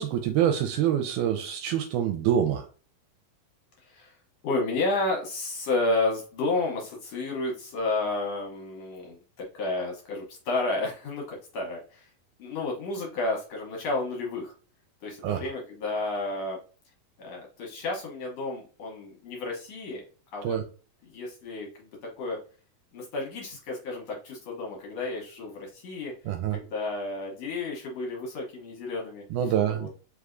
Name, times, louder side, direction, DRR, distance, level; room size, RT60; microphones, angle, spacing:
voice 1, 0.0-2.7 15.2-15.4 20.4-20.6 26.3-26.6 29.3-29.9, right 10 dB, 80° right, 6 dB, 1.8 m, -26 dB
voice 2, 3.8-4.1 4.4-9.2 9.5-12.1 12.4-14.5 15.0-16.6 17.2-20.0 20.3-20.6 21.1-21.9 22.2-22.4 22.9-26.1 26.5-29.2 29.7-29.9, left 2 dB, 65° left, -1 dB, 1.8 m, -31 dB
4.7 x 3.4 x 2.5 m, 0.38 s
omnidirectional pair, 3.9 m